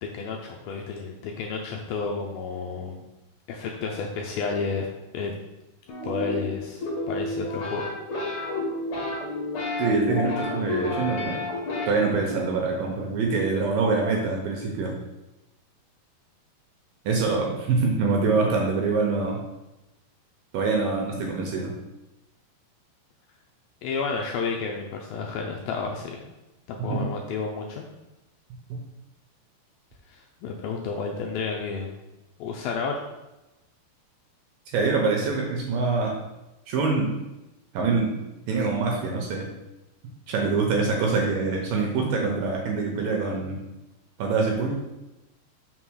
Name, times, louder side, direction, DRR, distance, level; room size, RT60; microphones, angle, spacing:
voice 1, 0.0-3.0 3.5-4.9 5.1-5.3 6.0-7.8 23.8-26.2 26.7-27.9 30.1-31.9 32.4-33.0, left 4 dB, 80° left, 1 dB, 2.2 m, -31 dB
sound 1, 5.9-11.9, left 2 dB, 40° left, 2.1 m, -30 dB
voice 2, 9.8-11.4 11.9-15.0 17.1-19.4 20.5-21.7 26.9-27.1 34.7-36.1 36.7-37.1 37.7-38.2 38.5-39.5 40.3-43.6 44.2-44.7, right 4 dB, 75° right, 0 dB, 2.2 m, -25 dB
6.0 x 3.8 x 6.2 m, 0.99 s
omnidirectional pair, 4.8 m